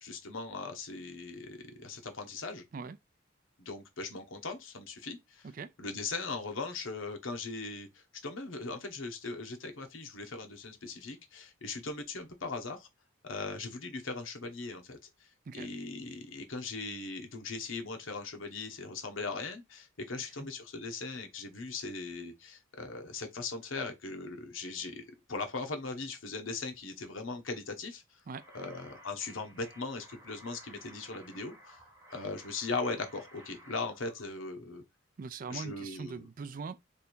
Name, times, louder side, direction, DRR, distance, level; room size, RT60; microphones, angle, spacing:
voice 1, 0.0-2.6 3.6-5.5 5.8-12.9 13.2-15.0 15.5-28.0 28.5-31.8 32.1-34.8 35.5-36.2, left 3 dB, 80° left, 1.1 m, -39 dB
sound 1, 28.3-34.3, equal, 15° right, 1.4 m, -55 dB
voice 2, 35.2-36.8, right 4 dB, 45° right, 0.3 m, -41 dB
3.4 x 2.6 x 4.4 m
head